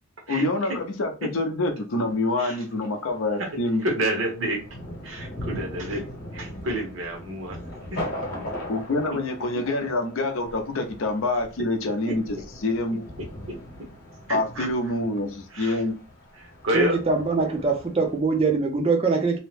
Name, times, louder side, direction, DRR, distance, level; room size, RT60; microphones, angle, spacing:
voice 1, 0.3-3.8 8.7-13.1 14.3-16.0, left 2 dB, 65° left, 0.6 m, -26 dB
Thunder, 2.0-18.2, left 1 dB, 50° left, 1.0 m, -40 dB
voice 2, 3.8-4.6 5.0-6.1 6.3-7.6 7.9-8.1 12.0-12.1 14.3-14.9 15.5-15.8 16.3-17.0, right 1 dB, 60° right, 1.0 m, -29 dB
voice 3, 16.7-19.4, right 4 dB, 25° right, 0.5 m, -23 dB
2.7 x 2.1 x 3.2 m
head